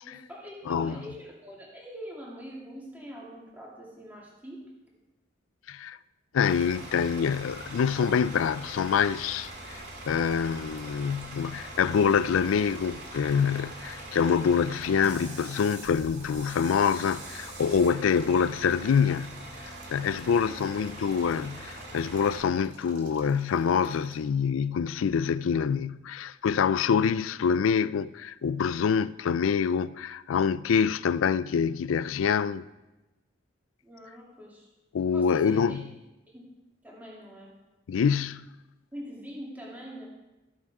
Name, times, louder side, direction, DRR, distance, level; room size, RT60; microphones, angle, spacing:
voice 1, 0.0-4.7 20.3-20.8 33.8-34.7 35.1-35.8 36.3-36.4 36.8-37.5 38.9-40.1, equal, 10° right, 2.5 m, -44 dB
voice 2, 0.7-1.0 5.7-6.0 6.3-19.3 19.6-32.6 34.9-35.9 37.9-38.4, left 6 dB, 90° left, 0.4 m, -26 dB
Bus / Idling, 6.4-22.4, right 2 dB, 55° right, 2.2 m, -43 dB
Male speech man speaking / Stream / Trickle dribble, 10.2-24.1, right 2 dB, 40° right, 2.5 m, -53 dB
14.5 x 7.2 x 4.8 m
head